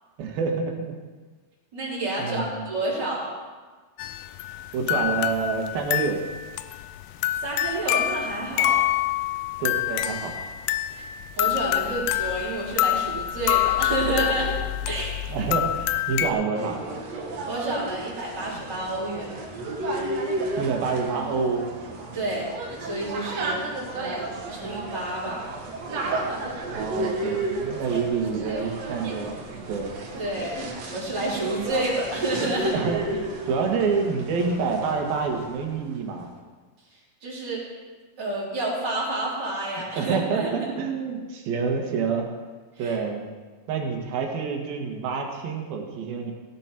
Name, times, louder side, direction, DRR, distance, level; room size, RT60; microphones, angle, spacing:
voice 1, 0.2-1.0 2.2-2.6 4.7-6.2 9.6-10.5 11.8-12.0 15.3-16.8 20.6-21.6 26.7-29.9 32.7-36.3 40.0-42.3 42.8-43.2 43.7-46.3, right 5 dB, 75° right, 1 dB, 3.4 m, -27 dB
voice 2, 1.7-3.3 7.4-8.9 11.4-14.6 14.9-15.1 17.5-19.4 22.1-22.5 22.8-23.6 23.9-25.5 27.9-28.0 28.5-28.8 30.2-30.6 30.9-32.7 37.2-37.6 38.2-40.7 42.8-43.0, right 2 dB, 30° right, -6 dB, 4.2 m, -29 dB
sound 1, 4.0-16.3, left 13 dB, 80° left, 2.1 m, -26 dB
sound 2, 16.5-35.8, right 2 dB, 55° right, 2.4 m, -33 dB
17.5 x 10.0 x 4.5 m, 1.4 s
omnidirectional pair, 4.3 m